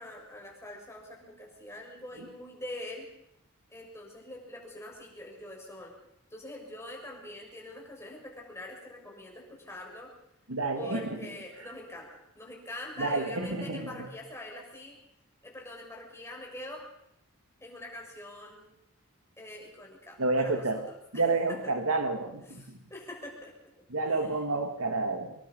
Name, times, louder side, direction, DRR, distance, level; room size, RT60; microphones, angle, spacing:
voice 1, 0.0-3.1 3.7-5.9 6.3-10.1 10.7-15.0 15.4-16.9 17.6-18.7 19.4-21.7 22.5-23.7 24.1-24.3, left 1 dB, 15° left, -1 dB, 6.4 m, -44 dB
voice 2, 10.5-11.3 13.0-14.1 20.2-20.9 21.1-22.8 23.9-25.3, right 3 dB, 80° right, 6 dB, 2.3 m, -30 dB
26.0 x 22.0 x 5.5 m, 0.78 s
head